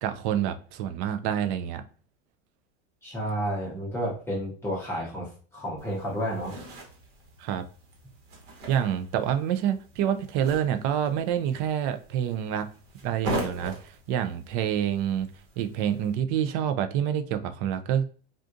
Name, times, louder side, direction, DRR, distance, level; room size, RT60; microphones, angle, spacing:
voice 1, 0.0-1.8 7.4-7.6 8.7-12.7 13.0-15.3 15.6-18.0, right 9 dB, 45° right, 0.4 m, -27 dB
voice 2, 3.0-6.6, equal, 10° left, 0.6 m, -31 dB
sound 1, 5.8-16.1, right 1 dB, 60° right, 1.2 m, -40 dB
3.7 x 2.3 x 2.5 m
supercardioid pair, 145°, 30 cm